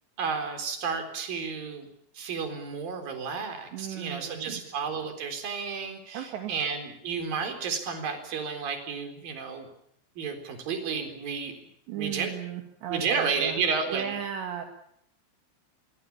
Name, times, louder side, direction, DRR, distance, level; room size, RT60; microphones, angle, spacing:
voice 1, 0.2-1.9 2.1-9.7 10.2-11.6 11.9-12.3 12.9-14.2, right 5 dB, 50° right, 7 dB, 5.5 m, -32 dB
voice 2, 3.7-4.6 6.1-6.5 11.9-13.6 13.9-14.7, right 9 dB, 70° right, 4 dB, 4.4 m, -35 dB
25.0 x 23.5 x 7.3 m, 0.73 s
omnidirectional pair, 5.3 m